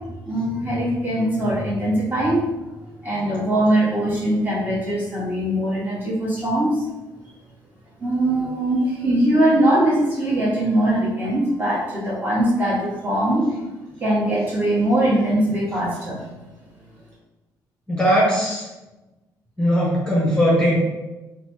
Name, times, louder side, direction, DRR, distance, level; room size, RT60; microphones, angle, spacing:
voice 1, 0.2-2.4 3.0-6.9 8.0-13.4 14.0-16.4, right 1 dB, 20° right, -7 dB, 1.4 m, -21 dB
voice 2, 17.9-18.6 19.6-20.8, equal, 10° left, -5 dB, 0.8 m, -19 dB
2.9 x 2.1 x 3.1 m, 1.1 s
supercardioid pair, 70°, 8 cm